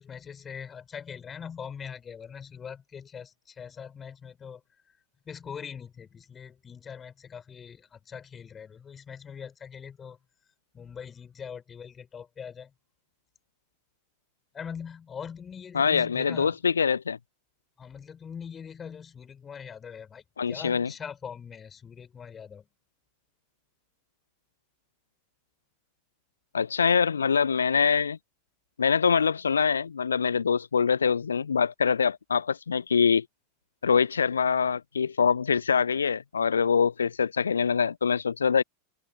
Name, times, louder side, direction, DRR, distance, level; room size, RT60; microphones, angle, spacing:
voice 1, 0.0-4.6 5.2-10.2 10.7-12.7 14.5-16.6 17.8-22.7, left 7 dB, 20° left, 4.5 m, -42 dB
voice 2, 15.7-17.2 20.4-20.9 26.5-28.2 28.8-33.2 33.8-38.6, left 6 dB, 70° left, 0.7 m, -24 dB
figure-of-eight pair, 90°, 0 cm